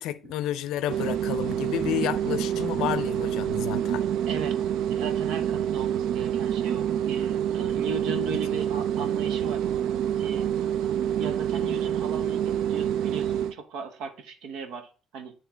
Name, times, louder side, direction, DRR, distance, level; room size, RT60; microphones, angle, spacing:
voice 1, 0.0-4.0, left 12 dB, 75° left, 0.5 m, -30 dB
sound 1, 0.9-13.5, right 10 dB, 65° right, 0.3 m, -27 dB
voice 2, 4.0-4.6 4.9-9.6 10.2-10.5 11.0-15.3, right 4 dB, 90° right, 1.0 m, -37 dB
9.5 x 3.3 x 4.4 m
cardioid pair, 175°, 0 cm